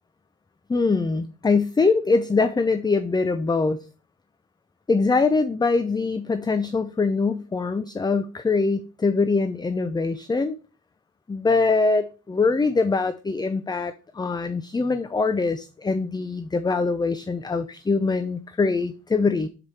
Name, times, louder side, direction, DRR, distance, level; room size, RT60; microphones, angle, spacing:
voice 1, 0.7-3.9 4.9-10.6 11.3-19.5, left 4 dB, 15° left, 0.4 m, -23 dB
6.9 x 4.7 x 4.2 m
cardioid pair, 90°, 30 cm